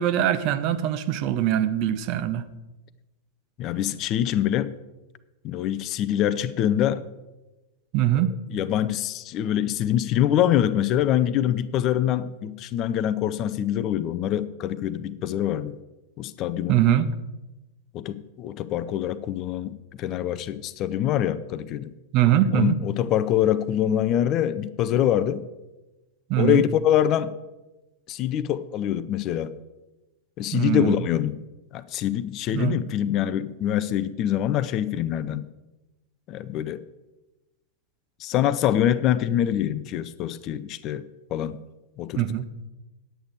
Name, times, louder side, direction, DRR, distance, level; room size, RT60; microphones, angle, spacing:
voice 1, 0.0-2.4 7.9-8.3 16.7-17.1 22.1-22.7 26.3-26.6 30.5-31.0 32.5-32.8 42.2-42.5, right 11 dB, 40° right, 0.6 m, -22 dB
voice 2, 3.6-4.7 5.4-7.0 8.5-15.8 16.2-16.8 17.9-21.9 22.5-25.5 26.4-27.3 28.1-29.6 30.4-31.4 31.7-35.5 36.3-36.8 38.2-41.0 41.3-41.6 42.0-42.2, left 11 dB, 35° left, 0.5 m, -24 dB
10.0 x 8.3 x 4.7 m
figure-of-eight pair, 90°, 0 cm